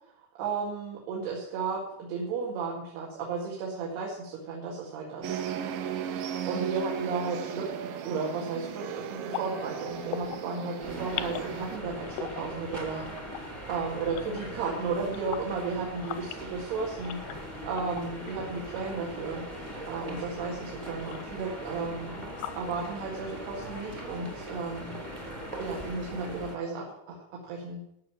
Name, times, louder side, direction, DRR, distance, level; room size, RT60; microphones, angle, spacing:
voice 1, 0.4-5.4 6.5-13.1 13.7-17.2 17.6-19.4 19.9-22.3 22.6-25.0 25.6-27.2 27.5-27.8, right 4 dB, 85° right, -3 dB, 4.1 m, -34 dB
sound 1, 5.2-11.8, right 8 dB, 70° right, 2.5 m, -36 dB
sound 2, 9.3-10.6 10.9-11.5 11.9-14.7 15.1-19.9 20.5-22.6, left 13 dB, 85° left, 2.8 m, -43 dB
sound 3, 10.8-26.6, equal, 20° right, 0.7 m, -40 dB
14.0 x 6.5 x 8.6 m, 0.77 s
omnidirectional pair, 4.5 m